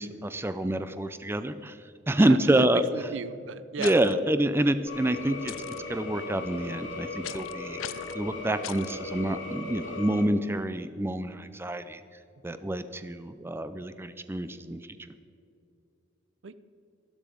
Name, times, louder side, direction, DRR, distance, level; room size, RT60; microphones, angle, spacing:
voice 1, 0.0-2.8 3.8-5.5 5.9-12.0 12.4-14.8, right 1 dB, 10° right, 11 dB, 0.4 m, -27 dB
voice 2, 2.2-4.0 16.4-16.5, right 5 dB, 65° right, 14 dB, 0.6 m, -36 dB
sound 1, 3.8-4.1 5.5-5.8 7.2-7.5 7.8-8.2 8.6-8.9, left 12 dB, 85° left, 0.4 m, -39 dB
sound 2, 4.9-10.2, left 3 dB, 65° left, 1.6 m, -38 dB
12.5 x 12.5 x 5.1 m, 2.5 s
head